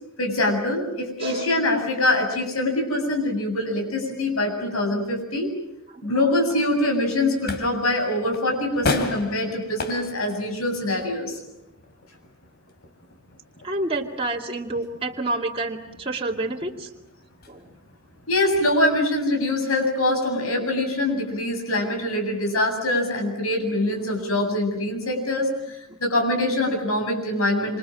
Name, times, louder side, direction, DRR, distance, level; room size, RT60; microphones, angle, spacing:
voice 1, 0.2-5.5 6.0-11.4 18.3-27.8, left 1 dB, 85° left, 3 dB, 8.0 m, -24 dB
voice 2, 1.2-1.5 4.5-4.6 4.9-5.0 5.9-6.3 13.6-16.9 17.5-17.7, right 2 dB, 25° right, -1 dB, 2.3 m, -29 dB
sound 1, 7.0-19.0, left 3 dB, 50° left, 3.1 m, -36 dB
27.0 x 26.5 x 7.6 m, 0.84 s
head